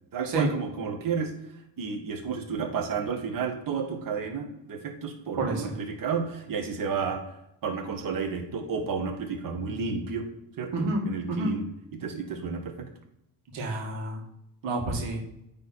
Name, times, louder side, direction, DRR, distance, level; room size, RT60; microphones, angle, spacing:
voice 1, 0.1-1.3 1.8-7.2 7.6-10.3 10.6-12.7, right 5 dB, 50° right, 4 dB, 1.7 m, -31 dB
voice 2, 5.4-5.7 10.7-11.0 11.3-11.5 13.5-14.2 14.6-15.2, right 2 dB, 85° right, -1 dB, 2.1 m, -29 dB
9.2 x 3.7 x 4.3 m, 0.82 s
cardioid pair, 125°, 42 cm